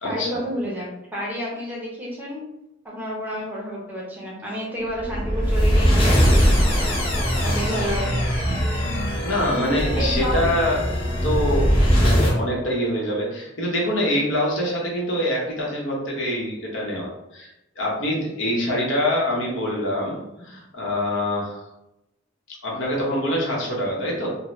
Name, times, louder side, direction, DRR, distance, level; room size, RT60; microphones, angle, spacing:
voice 1, 0.0-2.4 2.8-6.7 7.4-8.2 8.5-8.6 10.0-10.5, equal, 10° right, -5 dB, 0.6 m, -30 dB
sound 1, 5.0-12.4, equal, 30° left, 0.9 m, -20 dB
voice 2, 9.0-10.8 11.2-11.7 12.0-17.5 17.8-21.7 22.6-24.4, left 1 dB, 80° left, -3 dB, 0.9 m, -25 dB
2.6 x 2.1 x 3.1 m, 0.89 s
head